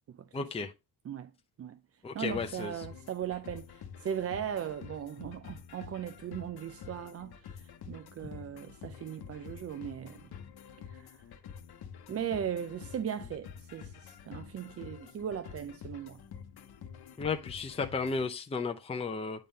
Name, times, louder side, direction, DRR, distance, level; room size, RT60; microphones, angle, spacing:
voice 1, 0.3-0.7 2.0-2.7 17.2-19.5, left 4 dB, 15° left, 0.6 m, -34 dB
voice 2, 2.1-10.3 10.9-11.2 12.1-16.2, right 9 dB, 40° right, 0.4 m, -38 dB
sound 1, 2.3-18.3, left 7 dB, 80° left, 0.9 m, -48 dB
8.8 x 3.7 x 3.9 m
wide cardioid pair, 175°, 37 cm